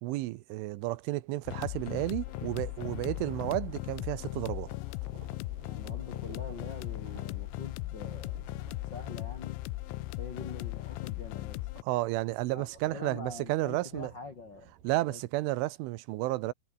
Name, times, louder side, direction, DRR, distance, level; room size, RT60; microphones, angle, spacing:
voice 1, 0.0-4.7 11.8-14.1 14.8-16.5, right 18 dB, 85° right, 3.4 m, -32 dB
sound 1, 0.9-15.4, right 9 dB, 55° right, 3.3 m, -56 dB
sound 2, 1.5-11.8, left 20 dB, 85° left, 3.3 m, -38 dB
voice 2, 5.6-8.5 8.9-9.6 10.2-11.7 12.5-14.7 15.1-15.2, left 4 dB, 55° left, 1.2 m, -44 dB
omnidirectional pair, 5.4 m